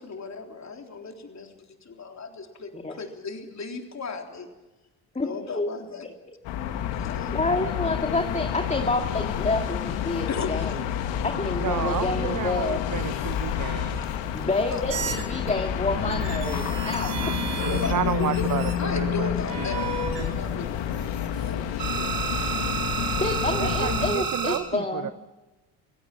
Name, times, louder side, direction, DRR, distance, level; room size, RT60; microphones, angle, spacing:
voice 1, 0.0-2.7 3.0-4.5 5.2-6.1 6.9-7.4 10.3-10.8 13.4-13.5 13.9-14.1 14.7-14.8 16.3-16.6 17.5-22.5 23.0-23.1, left 4 dB, 35° left, 3 dB, 3.7 m, -36 dB
voice 2, 5.1-5.7 7.3-10.9 11.2-12.8 14.3-17.4 23.2-25.1, left 2 dB, 15° left, 4 dB, 2.4 m, -28 dB
sound 1, 6.4-24.1, left 10 dB, 65° left, 2.1 m, -29 dB
voice 3, 11.6-14.0 17.6-19.3 19.6-19.8 23.6-25.1, right 10 dB, 40° right, 13 dB, 0.9 m, -31 dB
sound 2, 13.0-15.5 15.9-18.8 19.5-21.5 21.8-24.6, right 6 dB, 60° right, 4.9 m, -32 dB
28.0 x 17.0 x 6.0 m, 1.1 s
hypercardioid pair, 60°, 48 cm